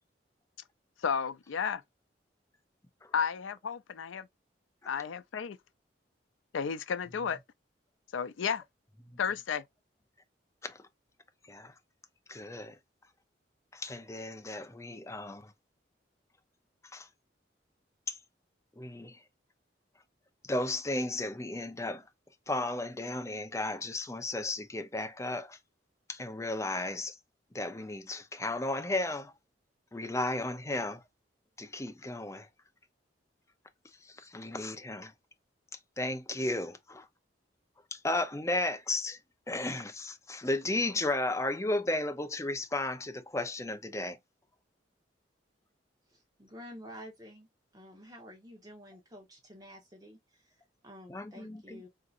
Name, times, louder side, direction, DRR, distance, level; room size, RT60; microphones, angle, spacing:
voice 1, 1.0-1.8 3.1-4.3 4.9-5.6 6.5-7.4 8.1-8.6 9.2-9.6, left 6 dB, 90° left, 0.4 m, -32 dB
voice 2, 12.3-12.7 13.7-15.5 16.9-17.1 18.1-18.2 18.8-19.2 20.5-22.0 22.5-25.6 26.1-27.2 27.5-29.3 29.9-31.0 31.6-32.5 34.2-35.1 36.0-37.0 37.9-39.2 39.5-44.2 51.1-51.8, left 2 dB, 15° left, 0.5 m, -34 dB
voice 3, 46.1-47.5 47.7-51.9, equal, 20° right, 1.0 m, -50 dB
3.7 x 2.8 x 2.4 m
head